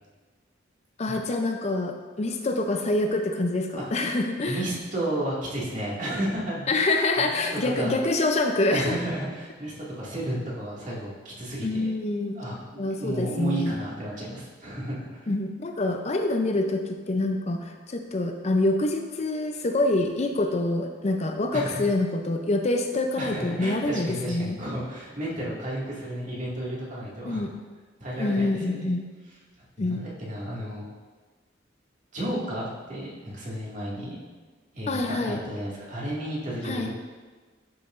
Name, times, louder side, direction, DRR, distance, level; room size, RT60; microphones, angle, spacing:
voice 1, 1.0-4.6 6.7-9.0 11.6-12.4 12.8-13.8 15.3-24.6 27.2-27.5 28.2-29.0 29.8-30.0 34.9-35.4 36.6-36.9, left 2 dB, 35° left, 4 dB, 0.5 m, -26 dB
voice 2, 4.5-6.7 7.2-7.3 7.8-8.0 8.7-11.9 12.3-15.3 21.5-21.8 23.2-27.4 28.0-28.9 29.8-30.9 32.1-34.2 34.7-36.9, right 1 dB, 45° right, -6 dB, 2.0 m, -32 dB
11.5 x 5.8 x 2.5 m, 1.4 s
head